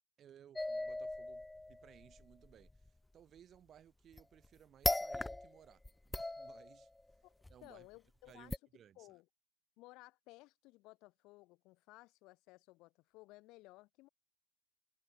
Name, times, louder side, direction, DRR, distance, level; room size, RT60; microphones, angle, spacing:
voice 1, 0.2-5.8 6.1-6.9 7.5-7.9 8.3-9.1, right 9 dB, 20° right, 3.2 m, -62 dB
sound 1, 0.6-2.9 4.1-4.5 4.8-5.6 5.8-7.0 7.4-7.5 8.5-8.6, left 2 dB, 5° left, 0.4 m, -38 dB
voice 2, 7.6-8.6 9.0-9.3 9.8-14.1, left 21 dB, 40° left, 7.0 m, -58 dB
supercardioid pair, 165°, 0 cm